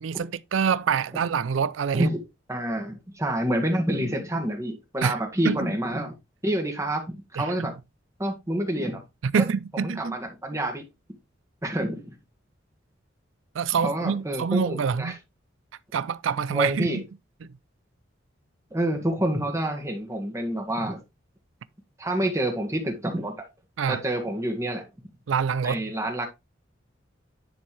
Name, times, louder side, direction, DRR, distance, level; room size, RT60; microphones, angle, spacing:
voice 1, 0.0-2.1 5.0-5.2 5.4-5.7 7.4-7.5 9.2-10.1 13.5-15.1 15.9-17.0 17.4-17.5 23.8-24.0 25.3-25.8, right 6 dB, 85° right, 0.4 m, -26 dB
voice 2, 2.5-6.2 6.4-7.8 8.2-9.0 9.8-10.8 11.6-12.1 13.8-15.2 16.5-17.0 18.7-21.0 22.0-23.4 23.9-24.8 25.6-26.3, right 1 dB, 15° right, 1.8 m, -28 dB
10.5 x 4.4 x 3.3 m
head